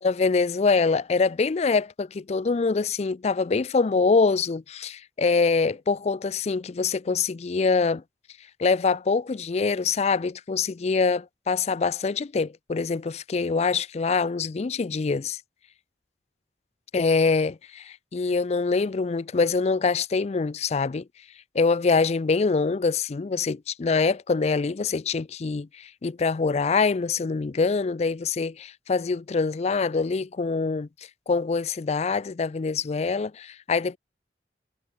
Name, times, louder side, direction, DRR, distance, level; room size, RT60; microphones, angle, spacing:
voice 1, 0.0-8.0 8.6-15.4 16.9-21.1 21.5-30.9 31.3-34.0, left 4 dB, 35° left, 0.4 m, -24 dB
head